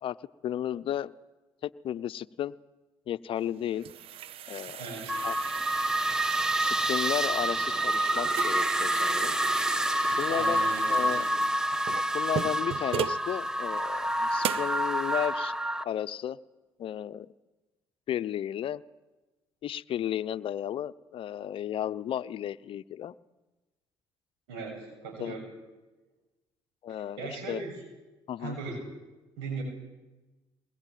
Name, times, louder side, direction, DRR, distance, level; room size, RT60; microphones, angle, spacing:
voice 1, 0.4-1.1 1.6-2.5 3.1-3.8 4.5-4.9 5.2-5.3 6.6-9.4 10.2-10.6 10.9-11.2 12.1-15.5 15.8-16.4 16.8-17.3 18.1-18.8 19.6-23.1 25.2-25.4 26.8-27.6 28.3-28.6, left 11 dB, 55° left, 15 dB, 0.8 m, -33 dB
sound 1, 3.4-13.3 13.8-13.9 14.4-14.8, right 11 dB, 60° right, 0.7 m, -38 dB
voice 2, 4.8-5.1 10.3-11.3 24.5-25.4 26.9-27.7 28.4-28.9 29.4-29.6, right 4 dB, 85° right, 3 dB, 7.6 m, -38 dB
sound 2, 5.1-15.8, right 1 dB, 5° right, 1.2 m, -28 dB
21.5 x 20.5 x 9.3 m, 1.1 s
supercardioid pair, 70°, 11 cm